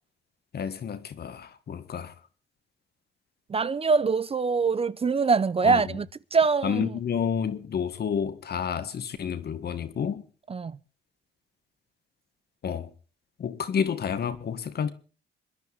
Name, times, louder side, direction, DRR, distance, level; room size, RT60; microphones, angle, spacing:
voice 1, 0.5-2.1 5.6-5.8 6.6-10.2 12.6-12.9 13.4-14.9, left 7 dB, 55° left, 1.7 m, -30 dB
voice 2, 3.5-6.1 6.3-6.9 10.5-10.7, right 5 dB, 30° right, 0.6 m, -23 dB
26.5 x 10.5 x 3.5 m
cardioid pair, 90°, 20 cm